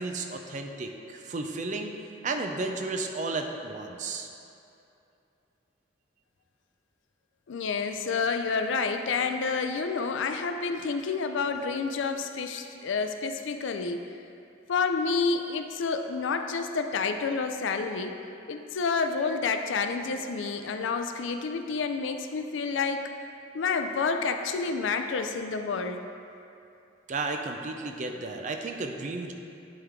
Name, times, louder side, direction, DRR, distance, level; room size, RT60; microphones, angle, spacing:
voice 1, 0.0-1.9 2.2-4.3 27.1-29.3, right 3 dB, 40° right, 4 dB, 0.4 m, -33 dB
voice 2, 7.5-14.1 14.7-18.2 18.5-23.1 23.5-26.0, left 4 dB, 70° left, 6 dB, 0.4 m, -29 dB
11.0 x 3.7 x 3.5 m, 2.7 s
head